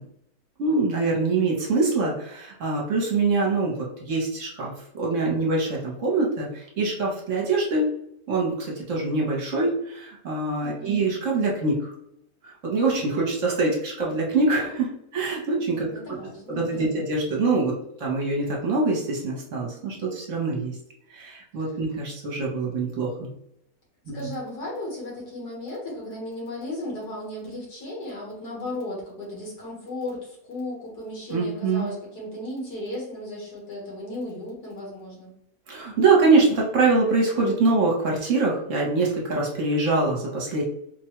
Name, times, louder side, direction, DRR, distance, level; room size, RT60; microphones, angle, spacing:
voice 1, 0.6-7.9 8.3-11.9 12.4-15.9 16.5-20.8 21.1-23.3 24.1-24.2 31.3-31.9 35.7-40.6, right 3 dB, 55° right, -2 dB, 1.1 m, -24 dB
voice 2, 10.6-11.0 15.7-16.9 24.1-35.3, left 1 dB, 75° left, -3 dB, 1.9 m, -35 dB
4.5 x 2.2 x 3.0 m, 0.75 s
omnidirectional pair, 1.7 m